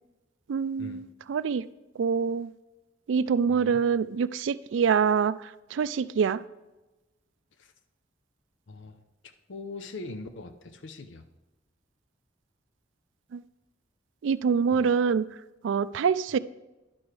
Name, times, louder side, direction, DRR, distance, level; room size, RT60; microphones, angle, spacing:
voice 1, 0.5-1.6 2.0-2.5 3.1-6.4 13.3-13.4 14.2-15.3 15.6-16.4, right 6 dB, 80° right, 16 dB, 0.3 m, -25 dB
voice 2, 3.5-3.8 7.6-7.7 8.7-8.9 9.5-11.2 14.7-14.9, left 3 dB, 80° left, 7 dB, 0.7 m, -41 dB
10.5 x 6.1 x 4.8 m, 1.1 s
head